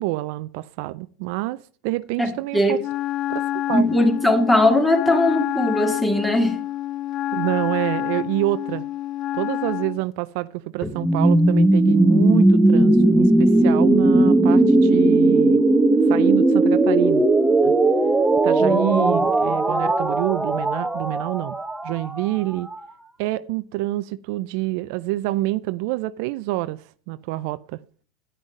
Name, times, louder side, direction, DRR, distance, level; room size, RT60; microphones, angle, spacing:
voice 1, 0.0-2.8 3.3-3.9 7.3-8.8 9.3-15.6 16.1-17.2 17.6-17.7 18.4-21.6 21.8-22.7 23.2-27.8, right 18 dB, 65° right, 0.4 m, -27 dB
voice 2, 2.2-2.8 3.7-6.6 10.8-10.9 18.6-19.2, left 1 dB, 10° left, 2.3 m, -20 dB
Wind instrument woodwind instrument, 2.8-10.0, left 13 dB, 45° left, 0.4 m, -28 dB
sound 1, 11.0-22.7, right 2 dB, 10° right, 1.0 m, -17 dB
10.5 x 6.1 x 5.4 m
hypercardioid pair, 90°, 0 cm